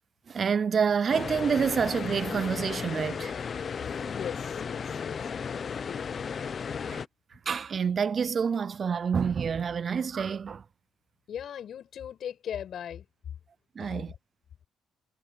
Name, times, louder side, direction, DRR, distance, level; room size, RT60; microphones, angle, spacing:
voice 1, 0.3-3.3 6.9-7.0 7.5-10.6 13.8-14.1, right 6 dB, 45° right, 0.4 m, -28 dB
sound 1, 1.1-7.1, left 6 dB, 45° left, 0.8 m, -34 dB
voice 2, 4.1-6.3 11.3-13.1 13.8-14.0, left 9 dB, 65° left, 6.5 m, -39 dB
cardioid pair, 90°, 0 cm